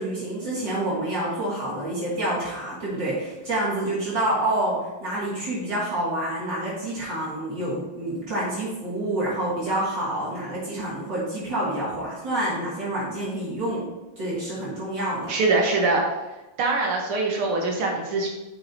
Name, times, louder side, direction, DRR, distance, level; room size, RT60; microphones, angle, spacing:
voice 1, 0.0-13.9 14.2-15.3, right 1 dB, 55° right, -8 dB, 3.0 m, -28 dB
voice 2, 15.3-16.0 16.6-18.3, right 3 dB, 80° right, 0 dB, 2.1 m, -23 dB
10.0 x 6.5 x 2.8 m, 1.0 s
omnidirectional pair, 2.4 m